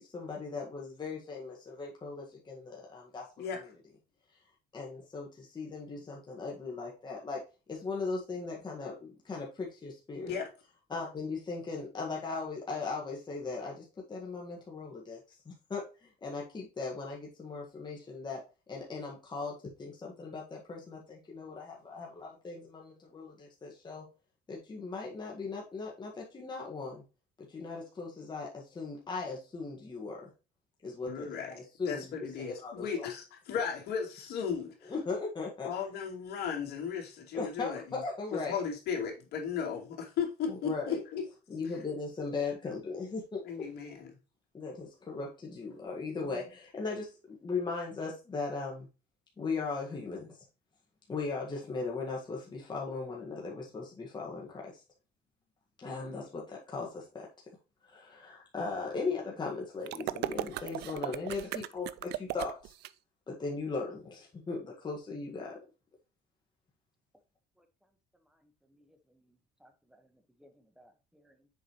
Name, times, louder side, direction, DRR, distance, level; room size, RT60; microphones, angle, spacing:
voice 1, 0.0-3.3 3.6-3.7 4.7-7.4 7.7-10.3 10.9-18.4 18.7-24.1 24.5-27.0 27.4-30.3 30.8-32.0 32.4-33.1 34.9-35.7 37.3-38.6 40.5-41.0 41.5-43.7 44.5-48.9 49.4-50.4 51.1-54.8 55.8-57.3 57.8-62.7 63.3-65.6, left 4 dB, 25° left, 1.7 m, -38 dB
voice 2, 31.1-35.0 35.6-38.0 38.3-41.3 41.7-41.8 43.4-44.1 46.2-46.5, left 7 dB, 70° left, 2.7 m, -36 dB
sound 1, 59.9-62.9, right 15 dB, 75° right, 0.4 m, -37 dB
voice 3, 68.2-71.5, equal, 5° right, 1.3 m, -65 dB
7.2 x 5.0 x 3.1 m
cardioid pair, 110°, 17 cm